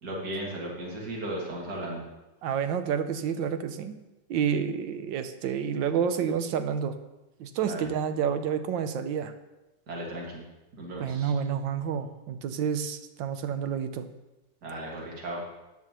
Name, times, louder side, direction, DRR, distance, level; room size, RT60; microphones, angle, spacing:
voice 1, 0.0-2.0 7.6-7.9 9.9-10.5 10.8-11.3 14.6-15.4, right 1 dB, 60° right, -3 dB, 2.6 m, -36 dB
voice 2, 2.4-4.0 4.3-7.0 7.4-9.3 11.0-14.0, right 7 dB, 80° right, 9 dB, 1.4 m, -29 dB
13.0 x 9.7 x 3.0 m, 1.0 s
omnidirectional pair, 2.0 m